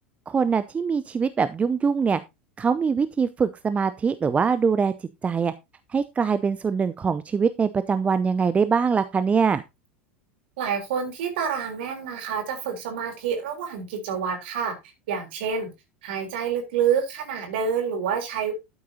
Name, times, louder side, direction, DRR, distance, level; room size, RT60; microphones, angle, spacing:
voice 1, 0.3-2.2 2.6-4.9 5.2-5.5 5.9-9.6, right 5 dB, 20° right, 13 dB, 0.6 m, -23 dB
voice 2, 10.6-14.7 15.1-15.7 16.0-18.5, right 7 dB, 60° right, 5 dB, 3.7 m, -27 dB
12.0 x 8.6 x 2.8 m, 0.22 s
figure-of-eight pair, 80°, 7 cm